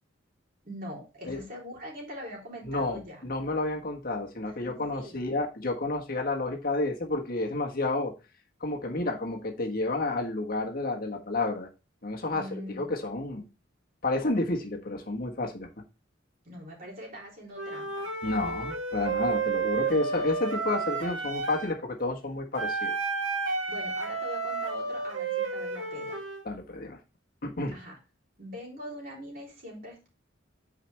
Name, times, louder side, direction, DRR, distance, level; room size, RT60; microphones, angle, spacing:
voice 1, 0.6-3.2 4.6-5.2 12.3-13.0 16.4-18.1 23.7-26.2 27.7-28.0 28.4-30.1, equal, 50° right, 3.6 m, -42 dB
voice 2, 2.6-8.1 8.6-11.7 12.0-13.5 14.0-15.7 18.2-22.9 26.4-27.0 27.4-27.8, left 2 dB, 50° left, 1.5 m, -30 dB
Wind instrument woodwind instrument, 17.5-21.8 22.6-26.5, right 4 dB, 85° right, 2.3 m, -31 dB
9.2 x 5.1 x 3.4 m
head